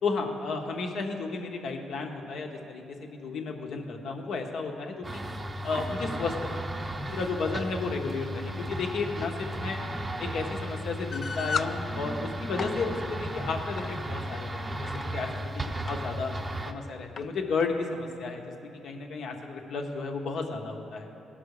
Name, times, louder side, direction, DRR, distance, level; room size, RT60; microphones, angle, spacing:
voice 1, 0.0-5.2 5.6-6.5 7.1-9.8 10.2-16.3 16.6-21.1, left 4 dB, 70° left, 2 dB, 1.2 m, -33 dB
sound 1, 5.0-16.7, right 1 dB, 20° right, 0.6 m, -35 dB
sound 2, 11.1-11.8 12.4-12.8 13.8-14.0 14.7-15.0 15.9-16.0 16.3-16.4 17.2-17.3, left 6 dB, 45° left, 0.4 m, -33 dB
17.0 x 6.0 x 4.9 m, 2.9 s
cardioid pair, 90°, 0 cm